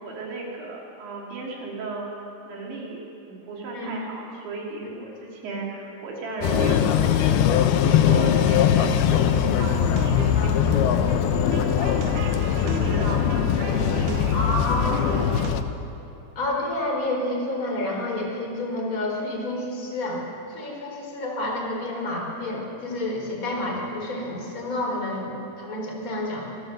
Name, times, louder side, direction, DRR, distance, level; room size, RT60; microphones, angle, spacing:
voice 1, 0.0-2.1 2.5-7.3 7.7-11.7 12.1-13.3 13.6-14.6 14.8-15.5, right 3 dB, 65° right, -2 dB, 5.5 m, -35 dB
sound 1, 6.4-15.6, left 9 dB, 80° left, 2.3 m, -21 dB
sound 2, 9.9-15.5, right 9 dB, 80° right, 3.1 m, -39 dB
voice 2, 14.3-14.9 16.3-20.2 20.5-26.5, left 1 dB, 20° left, -1 dB, 4.1 m, -29 dB
26.5 x 14.0 x 7.9 m, 2.7 s
omnidirectional pair, 5.7 m